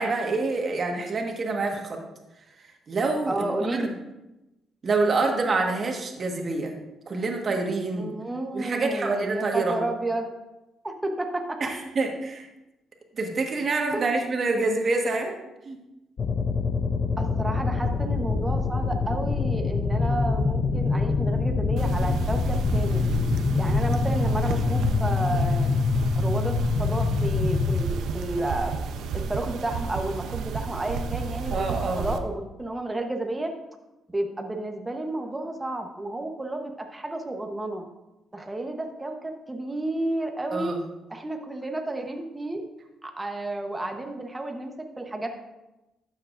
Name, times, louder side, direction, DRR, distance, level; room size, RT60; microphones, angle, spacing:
voice 1, 0.0-2.0 2.9-3.9 4.8-6.7 7.1-8.1 8.5-9.8 11.6-12.5 13.1-15.3 15.6-15.8 31.5-32.1 40.5-40.8, right 3 dB, 45° right, 2 dB, 1.5 m, -26 dB
voice 2, 3.3-3.9 8.0-10.3 10.8-11.6 13.9-14.1 17.2-23.0 23.6-25.7 26.2-28.7 29.1-33.5 34.1-37.8 38.3-40.8 41.1-42.6 43.0-45.3, right 2 dB, 15° right, 3 dB, 1.0 m, -31 dB
sound 1, 16.2-27.9, left 4 dB, 50° left, 0.6 m, -25 dB
sound 2, 21.8-32.2, right 4 dB, 80° right, 0.6 m, -31 dB
12.0 x 7.3 x 2.6 m, 0.98 s
cardioid pair, 90°, 0 cm